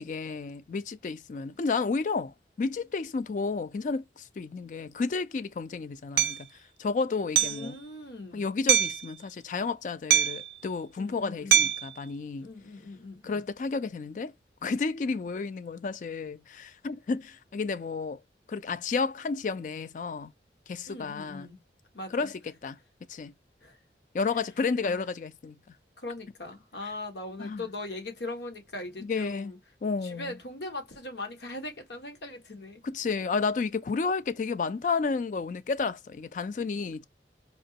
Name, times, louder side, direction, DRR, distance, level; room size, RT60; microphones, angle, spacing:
voice 1, 0.0-6.5 6.8-7.7 8.3-12.5 13.2-14.3 14.6-18.2 18.5-20.3 20.7-21.5 22.1-22.3 22.6-22.8 23.1-23.3 24.1-25.6 27.4-27.6 29.0-29.5 29.8-30.3 32.8-37.0, left 4 dB, 45° left, 0.3 m, -31 dB
Hammer, 6.2-6.4 7.4-7.7 8.7-9.0 10.1-10.5 11.5-11.9, right 10 dB, 60° right, 0.4 m, -23 dB
voice 2, 7.4-8.5 11.0-11.7 12.4-13.5 20.9-21.6 21.9-22.3 23.6-23.8 24.3-24.4 24.8-25.0 26.0-29.6 30.0-32.8, left 2 dB, 80° left, 1.3 m, -40 dB
4.3 x 2.9 x 2.7 m
head